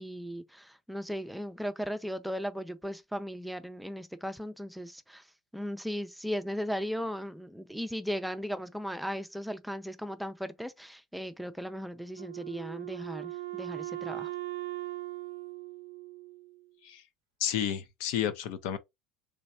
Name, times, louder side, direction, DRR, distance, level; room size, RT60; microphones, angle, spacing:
voice 1, 0.0-5.2 5.5-14.3, equal, ahead, 0.4 m, -37 dB
Wind instrument woodwind instrument, 12.1-16.6, right 17 dB, 75° right, 0.4 m, -39 dB
voice 2, 17.4-18.8, left 10 dB, 65° left, 0.6 m, -31 dB
3.3 x 3.1 x 2.6 m
hypercardioid pair, 85°, 0 cm